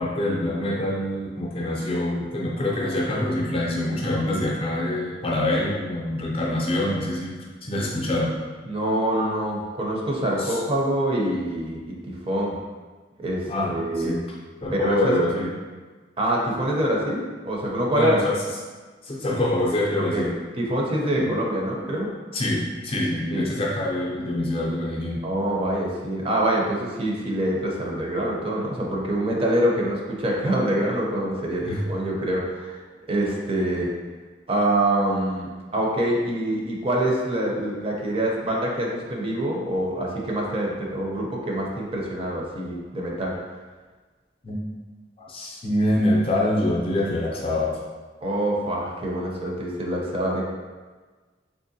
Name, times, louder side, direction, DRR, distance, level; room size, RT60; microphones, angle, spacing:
voice 1, 0.0-8.3 10.4-10.6 13.5-14.2 14.6-15.5 17.9-18.4 19.0-20.3 21.2-21.3 22.3-25.2 31.6-31.8 44.4-44.6 45.2-47.8, left 1 dB, 30° left, -3 dB, 0.5 m, -25 dB
voice 2, 8.6-12.6 13.2-14.2 14.7-15.1 16.2-18.2 20.1-20.3 20.6-22.1 23.3-23.5 25.2-32.8 33.1-33.9 34.5-43.3 48.2-50.4, right 1 dB, 30° right, -2 dB, 0.5 m, -25 dB
3.6 x 2.9 x 2.7 m, 1.4 s
head